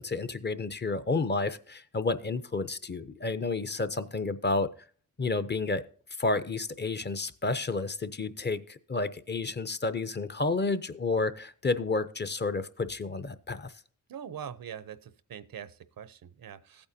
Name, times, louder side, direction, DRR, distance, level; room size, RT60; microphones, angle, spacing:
voice 1, 0.0-4.7 5.2-5.8 6.2-13.7, left 3 dB, 30° left, 13 dB, 0.6 m, -30 dB
voice 2, 14.1-16.9, right 8 dB, 85° right, 15 dB, 0.7 m, -43 dB
15.0 x 8.8 x 2.7 m, 0.43 s
wide cardioid pair, 110°, 34 cm